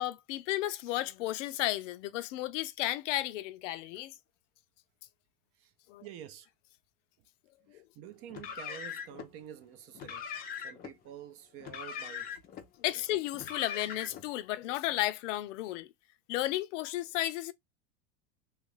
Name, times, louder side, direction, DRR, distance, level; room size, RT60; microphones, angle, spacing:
voice 1, 0.0-4.1 5.9-6.0 7.7-7.8 12.8-15.9 16.3-17.5, left 15 dB, 75° left, 0.5 m, -33 dB
voice 2, 6.0-6.5 7.6-12.4, right 10 dB, 40° right, 0.5 m, -49 dB
Car, 8.3-9.3 9.9-10.9 11.6-12.6 13.3-14.3, left 8 dB, 25° left, 0.5 m, -41 dB
2.9 x 2.4 x 3.0 m
supercardioid pair, 135°, 38 cm